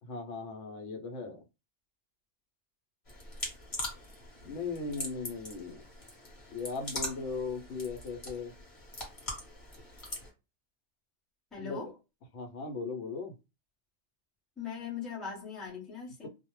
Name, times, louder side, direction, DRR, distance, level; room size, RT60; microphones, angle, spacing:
voice 1, 0.0-1.4 4.4-5.8 6.5-8.5 11.6-11.8 12.3-13.3 16.2-16.3, left 4 dB, 75° left, 0.9 m, -38 dB
sound 1, 3.1-10.3, left 1 dB, 30° left, 0.9 m, -42 dB
voice 2, 11.5-11.9 14.6-16.3, left 6 dB, ahead, 0.6 m, -40 dB
2.3 x 2.0 x 3.0 m
omnidirectional pair, 1.3 m